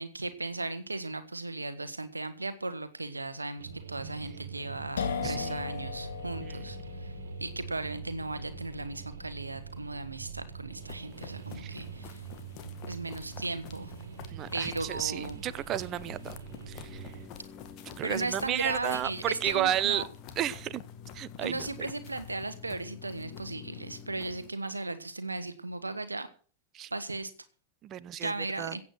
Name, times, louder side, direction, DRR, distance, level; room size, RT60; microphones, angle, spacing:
voice 1, 0.0-7.1 7.4-12.2 12.9-13.9 14.5-15.4 18.0-20.0 21.4-26.3 26.9-27.3 28.2-28.8, right 2 dB, 80° right, 1.1 m, -36 dB
sound 1, 3.6-17.3, right 7 dB, 65° right, 1.9 m, -45 dB
sound 2, 5.0-12.5, left 6 dB, 65° left, 2.4 m, -40 dB
voice 2, 5.2-5.8 6.5-6.6 11.6-11.8 14.3-16.3 16.7-17.1 17.8-20.0 20.4-20.8 21.1-21.7 26.7-26.9 27.8-28.8, right 12 dB, 30° right, 0.8 m, -33 dB
sound 3, 10.8-24.5, left 8 dB, 40° left, 1.9 m, -47 dB
15.5 x 8.5 x 6.2 m
figure-of-eight pair, 90°, 0 cm